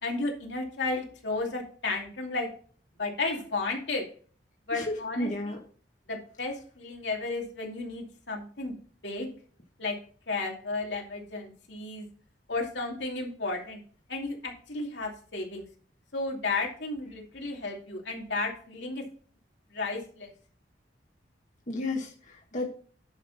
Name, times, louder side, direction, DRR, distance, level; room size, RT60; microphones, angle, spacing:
voice 1, 0.0-2.5 3.0-4.0 4.7-5.3 6.1-8.8 9.0-9.3 9.8-9.9 10.3-12.1 12.5-13.8 14.1-15.6 16.1-19.0 19.7-20.3, left 3 dB, 75° left, 0 dB, 2.7 m, -33 dB
voice 2, 4.7-5.6 21.7-22.7, left 2 dB, 45° left, 0 dB, 1.7 m, -32 dB
10.5 x 6.5 x 4.2 m, 0.43 s
head